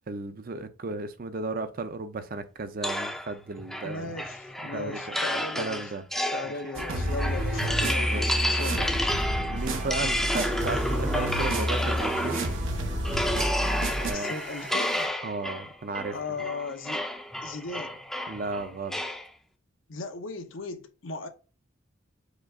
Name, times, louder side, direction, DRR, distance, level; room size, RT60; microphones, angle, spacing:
voice 1, 0.1-4.1 4.6-6.0 8.0-8.3 9.5-12.4 14.0-14.3 15.2-16.2 18.3-19.0, right 3 dB, 45° right, 0.5 m, -34 dB
sound 1, 2.8-12.6 13.0-19.3, left 1 dB, ahead, 0.5 m, -31 dB
voice 2, 3.8-5.9 6.3-9.1 14.0-15.1 16.1-17.1 17.4-18.1 19.9-21.3, left 3 dB, 75° left, 0.8 m, -37 dB
sound 2, 6.7-14.1, right 1 dB, 80° right, 0.9 m, -29 dB
sound 3, 9.6-15.1, right 3 dB, 60° right, 1.3 m, -44 dB
5.1 x 2.4 x 3.5 m
head